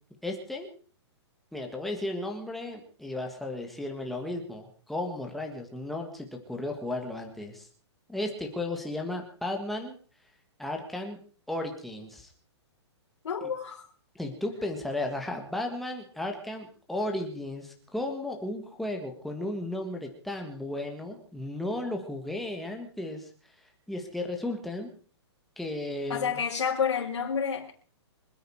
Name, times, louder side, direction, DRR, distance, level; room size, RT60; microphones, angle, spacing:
voice 1, 0.2-0.7 1.5-7.7 8.1-10.0 10.6-11.2 11.5-12.3 14.1-23.3 23.9-24.9 25.6-26.4, left 1 dB, ahead, 2 dB, 1.7 m, -34 dB
voice 2, 13.2-13.9 26.1-27.8, left 7 dB, 85° left, -4 dB, 3.8 m, -29 dB
25.5 x 9.4 x 4.7 m, 0.41 s
hypercardioid pair, 175°, 15 cm